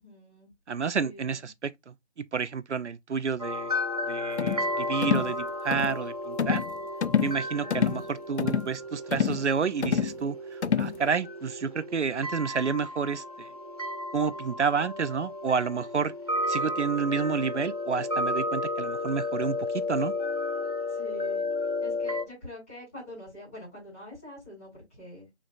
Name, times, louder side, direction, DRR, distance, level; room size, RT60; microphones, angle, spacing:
voice 1, 0.0-0.5 1.0-1.5 7.5-8.1 20.9-21.5 21.8-25.3, left 1 dB, 10° left, 3.1 m, -45 dB
voice 2, 0.7-3.7 4.1-6.6 7.2-13.5 14.1-16.1 16.5-20.1, right 5 dB, 85° right, 0.5 m, -30 dB
sound 1, 3.4-22.3, left 2 dB, 35° right, 0.5 m, -33 dB
sound 2, 4.4-4.7 5.0-5.3 5.7-6.0 6.4-6.7 7.0-7.4 7.7-8.0 8.4-8.7 9.1-9.4 9.8-10.2 10.6-11.0, left 7 dB, 75° left, 0.5 m, -27 dB
6.4 x 2.9 x 2.3 m
figure-of-eight pair, 165°, 34 cm